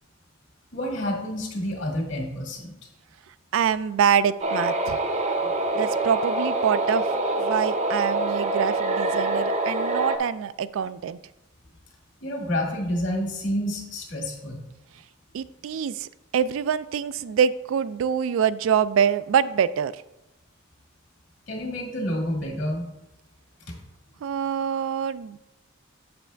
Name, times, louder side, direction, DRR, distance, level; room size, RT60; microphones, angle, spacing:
voice 1, 0.7-2.7 5.4-5.5 12.2-14.6 21.5-22.8 23.7-23.8, left 1 dB, 60° left, 1 dB, 1.9 m, -29 dB
voice 2, 3.5-5.0 5.7-7.0 7.4-11.2 15.3-20.0 24.2-25.4, right 8 dB, 75° right, 15 dB, 0.3 m, -25 dB
sound 1, 4.4-10.2, right 2 dB, 35° right, 0.6 m, -25 dB
7.2 x 6.8 x 3.4 m, 0.91 s
head